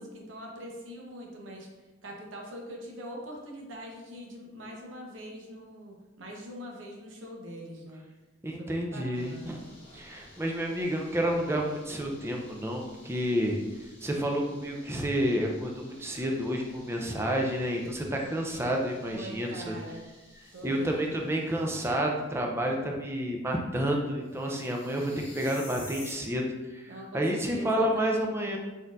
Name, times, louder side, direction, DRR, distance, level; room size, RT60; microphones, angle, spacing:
voice 1, 0.0-1.7 2.0-8.0 8.6-9.7 19.0-20.1 20.5-21.3 26.9-28.0 28.4-28.5, equal, 75° right, 0 dB, 0.8 m, -43 dB
voice 2, 8.4-9.6 9.9-19.7 20.6-28.6, equal, 15° right, 1 dB, 0.4 m, -30 dB
sound 1, 9.1-22.1 24.2-26.1, left 2 dB, 30° left, 1.1 m, -53 dB
4.1 x 3.9 x 2.4 m, 1.2 s
head